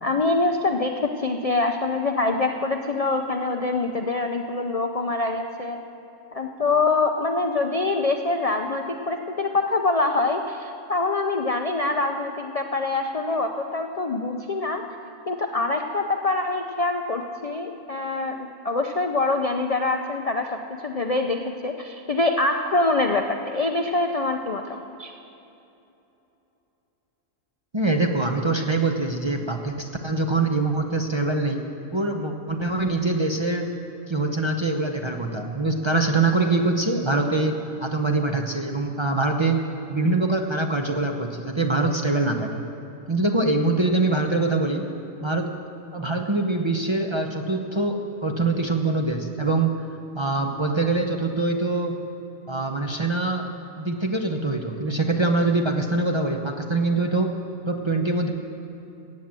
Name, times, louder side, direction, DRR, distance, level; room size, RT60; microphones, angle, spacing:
voice 1, 0.0-5.8 6.3-14.8 15.3-25.1, left 3 dB, 45° left, 4 dB, 0.5 m, -25 dB
voice 2, 27.7-31.6 31.9-39.6 39.9-42.6 43.1-44.9 45.2-45.6 45.9-49.7 50.1-52.0 52.5-53.5 53.8-57.4 57.7-58.3, right 2 dB, 30° right, 2 dB, 0.6 m, -24 dB
15.5 x 9.0 x 7.5 m, 2.9 s
omnidirectional pair, 1.4 m